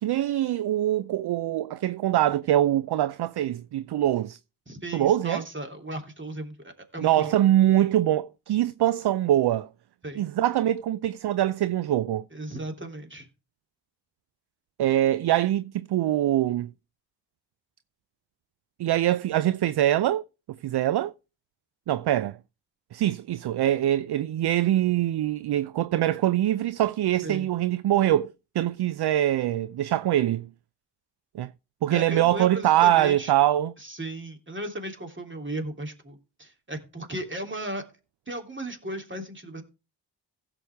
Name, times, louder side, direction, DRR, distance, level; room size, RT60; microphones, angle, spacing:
voice 1, 0.0-4.4 4.9-5.4 7.0-9.7 10.2-12.2 14.8-16.7 18.8-20.2 20.5-21.1 21.9-22.4 22.9-30.5 31.3-31.5 31.8-33.7, right 13 dB, 55° right, 0.6 m, -23 dB
voice 2, 4.7-7.3 10.0-10.3 12.3-13.3 27.2-27.5 31.9-33.3 33.8-37.8 38.3-39.6, right 1 dB, 25° right, 3.0 m, -36 dB
15.5 x 6.9 x 3.4 m
supercardioid pair, 40°, 47 cm